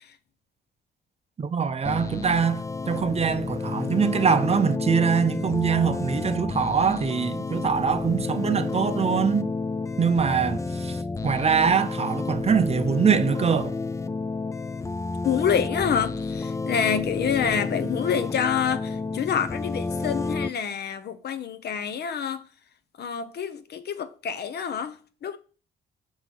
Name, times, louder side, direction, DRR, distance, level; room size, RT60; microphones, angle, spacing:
voice 1, 1.4-9.5 10.0-13.7, right 6 dB, 30° right, 0.5 m, -23 dB
sound 1, 1.8-20.5, left 3 dB, 15° left, 0.4 m, -30 dB
voice 2, 15.2-22.4 23.0-25.0 25.2-25.4, left 7 dB, 55° left, 0.7 m, -27 dB
6.1 x 3.6 x 6.0 m
cardioid pair, 90°, 20 cm